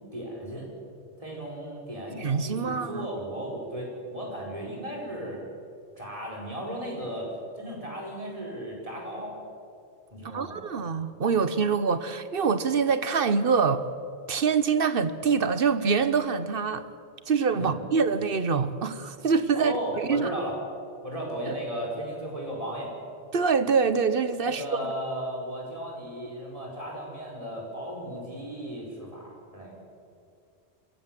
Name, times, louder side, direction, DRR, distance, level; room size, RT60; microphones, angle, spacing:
voice 1, 0.1-0.7 1.2-5.4 6.0-9.4 10.1-10.7 17.5-17.8 19.5-20.6 21.0-22.9 24.4-29.8, equal, 30° right, -2 dB, 5.2 m, -35 dB
voice 2, 2.2-3.1 10.3-13.9 14.3-16.9 17.3-20.3 21.5-21.6 23.3-24.6, right 5 dB, 60° right, 12 dB, 1.1 m, -25 dB
25.5 x 16.5 x 7.6 m, 2.4 s
omnidirectional pair, 1.1 m